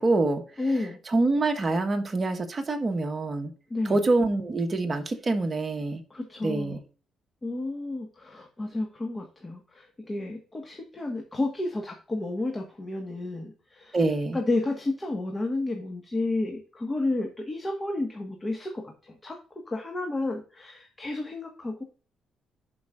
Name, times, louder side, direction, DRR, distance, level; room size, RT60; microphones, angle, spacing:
voice 1, 0.0-0.4 1.1-3.5 3.9-6.0 6.4-6.8 13.9-14.4, right 2 dB, 30° right, 5 dB, 1.3 m, -25 dB
voice 2, 0.6-1.0 3.7-4.0 6.1-6.8 7.4-14.0 14.3-19.4 19.7-21.8, left 2 dB, 25° left, 2 dB, 1.5 m, -31 dB
11.5 x 5.4 x 2.5 m, 0.38 s
cardioid pair, 90°, 0 cm